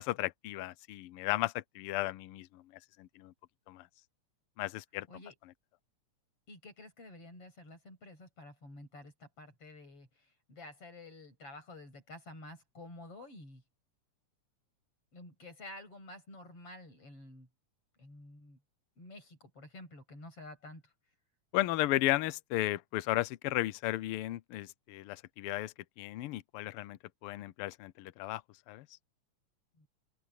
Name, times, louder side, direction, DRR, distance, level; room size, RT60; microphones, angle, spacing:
voice 1, 0.0-2.6 3.0-3.3 3.7-3.8 4.6-5.1 21.5-28.4 28.7-28.8, left 16 dB, 90° left, 1.2 m, -34 dB
voice 2, 6.5-13.6 15.1-17.5 18.0-18.6 19.0-20.9 29.8-29.9, left 2 dB, 50° left, 9.1 m, -50 dB
open air
omnidirectional pair, 3.3 m